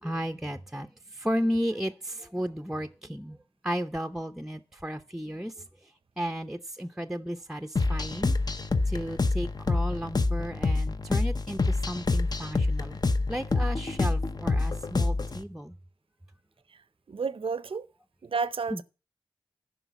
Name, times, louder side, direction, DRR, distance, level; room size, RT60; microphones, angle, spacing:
voice 1, 0.0-3.4 3.6-5.9 6.2-8.4 8.9-13.0 13.3-15.7 18.7-18.8, equal, 5° right, 0.6 m, -34 dB
sound 1, 7.8-15.4, left 3 dB, 45° left, 0.7 m, -27 dB
voice 2, 17.1-17.9 18.2-18.8, right 5 dB, 75° right, 0.6 m, -31 dB
9.9 x 5.4 x 7.0 m
wide cardioid pair, 60°, 9 cm